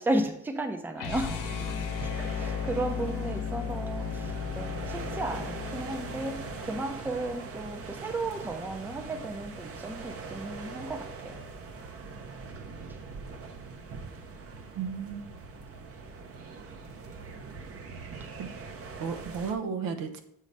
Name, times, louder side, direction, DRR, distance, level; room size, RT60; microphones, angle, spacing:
voice 1, 0.0-1.4 2.1-11.4, right 2 dB, 5° right, 6 dB, 0.5 m, -34 dB
sound 1, 1.0-7.0, left 7 dB, 65° left, 0.9 m, -35 dB
sound 2, 1.2-19.5, right 4 dB, 45° right, 0.7 m, -42 dB
voice 2, 14.8-15.3 18.4-18.5 19.0-20.2, right 6 dB, 80° right, 6 dB, 0.9 m, -33 dB
7.5 x 3.2 x 5.2 m, 0.79 s
cardioid pair, 130°, 33 cm